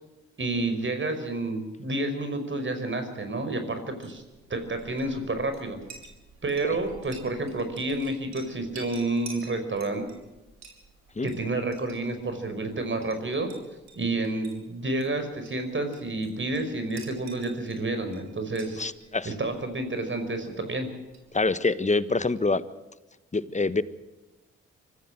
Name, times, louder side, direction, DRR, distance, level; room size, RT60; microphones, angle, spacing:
voice 1, 0.4-4.2 4.5-5.8 6.4-10.1 11.2-13.5 14.0-18.8 19.2-20.9, right 2 dB, 40° right, 8 dB, 5.3 m, -30 dB
Chink clink, 4.0-21.7, right 4 dB, 65° right, 5.3 m, -51 dB
voice 2, 18.8-19.3 21.3-22.6 23.3-23.8, left 3 dB, 25° left, 14 dB, 1.4 m, -25 dB
25.0 x 15.0 x 7.7 m, 1.0 s
hypercardioid pair, 45°, 29 cm